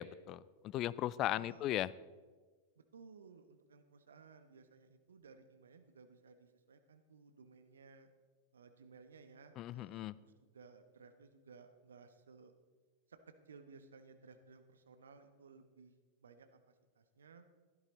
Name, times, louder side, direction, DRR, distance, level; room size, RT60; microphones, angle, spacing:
voice 1, 0.0-1.9 9.6-10.1, left 13 dB, 35° left, 21 dB, 0.4 m, -37 dB
voice 2, 1.4-1.7 2.8-8.1 8.5-12.5 13.1-15.9 16.2-17.4, right 5 dB, 70° right, 8 dB, 1.1 m, -59 dB
16.0 x 11.5 x 4.0 m, 1.4 s
figure-of-eight pair, 90°, 0 cm